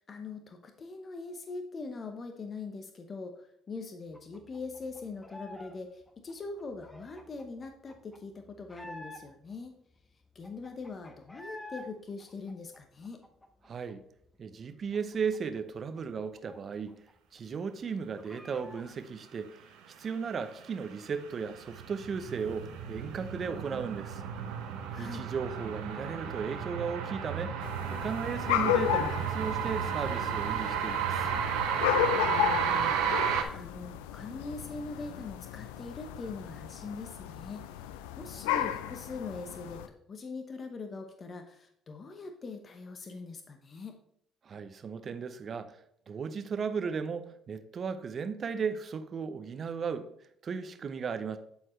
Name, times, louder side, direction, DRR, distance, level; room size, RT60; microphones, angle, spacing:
voice 1, 0.0-9.7 10.3-13.2 24.9-25.3 32.2-37.6 38.2-44.0, left 3 dB, 40° left, 6 dB, 0.9 m, -42 dB
sound 1, 4.1-5.8 6.0-9.5 10.0-10.1 10.2-11.9 12.2-13.9 14.2-14.3 14.6-17.1 17.4-17.5 17.8-19.0, left 1 dB, 10° left, 1.2 m, -50 dB
voice 2, 13.6-14.0 14.4-16.9 17.3-19.6 20.0-24.2 25.0-27.6 27.9-31.3 44.4-50.1 50.4-51.4, right 6 dB, 50° right, 10 dB, 0.8 m, -36 dB
sound 2, 20.6-33.4, right 8 dB, 80° right, 0.9 m, -33 dB
sound 3, 27.6-39.9, left 12 dB, 85° left, 0.4 m, -34 dB
11.0 x 4.5 x 3.2 m, 0.69 s
supercardioid pair, 65°, 0 cm